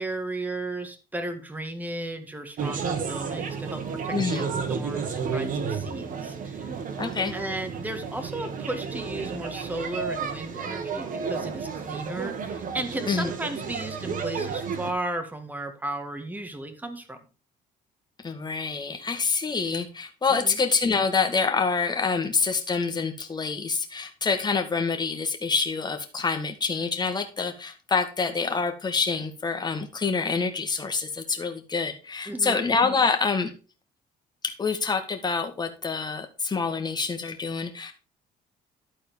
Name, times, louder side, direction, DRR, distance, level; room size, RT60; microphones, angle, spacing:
voice 1, 0.0-6.7 7.3-17.2 20.4-20.6 32.3-32.6, right 1 dB, 10° right, 7 dB, 1.7 m, -35 dB
sound 1, 2.6-14.9, right 6 dB, 50° right, 1.7 m, -32 dB
voice 2, 4.1-4.5 7.0-7.3 13.1-13.3 18.2-33.5 34.6-37.9, left 4 dB, 25° left, 5 dB, 1.9 m, -26 dB
12.0 x 4.3 x 5.2 m, 0.34 s
cardioid pair, 110°, 17 cm